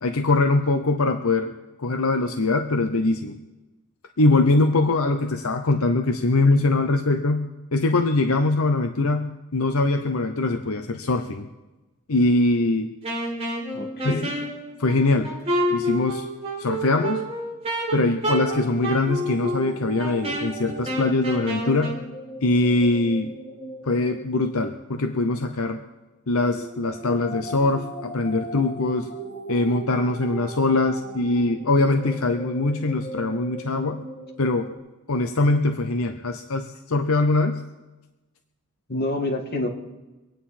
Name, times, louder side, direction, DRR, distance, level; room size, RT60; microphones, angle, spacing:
voice 1, 0.0-1.5 1.8-3.4 4.2-11.5 12.1-12.9 14.0-14.3 14.8-15.3 15.7-16.2 16.6-17.2 17.9-22.0 22.4-23.3 23.8-25.8 26.3-29.1 29.5-34.0 34.4-34.7 35.1-37.6, left 2 dB, 75° left, 6 dB, 0.8 m, -22 dB
Wind instrument woodwind instrument, 13.0-22.0, equal, 30° right, 4.5 m, -29 dB
voice 2, 13.7-14.3 38.9-39.7, left 2 dB, 45° left, 1 dB, 2.2 m, -27 dB
sound 1, 18.2-25.4 26.3-34.8, right 2 dB, 20° left, 6.4 m, -38 dB
25.0 x 9.4 x 4.4 m, 1.1 s
head